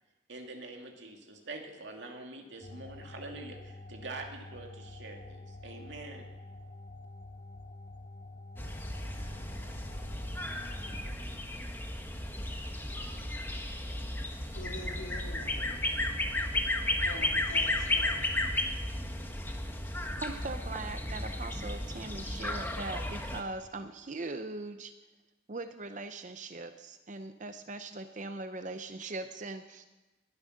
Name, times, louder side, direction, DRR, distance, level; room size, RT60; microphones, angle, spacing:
voice 1, 0.3-6.3, right 2 dB, 70° right, 2.5 m, -45 dB
sound 1, 2.6-11.1, left 2 dB, 45° left, 2.0 m, -48 dB
sound 2, 8.6-23.4, left 1 dB, 10° left, 1.3 m, -34 dB
voice 2, 14.5-15.8 17.0-18.4, left 2 dB, 90° left, 3.4 m, -45 dB
voice 3, 20.2-24.9 25.5-29.8, right 3 dB, 40° right, 0.6 m, -40 dB
20.5 x 10.5 x 6.5 m
head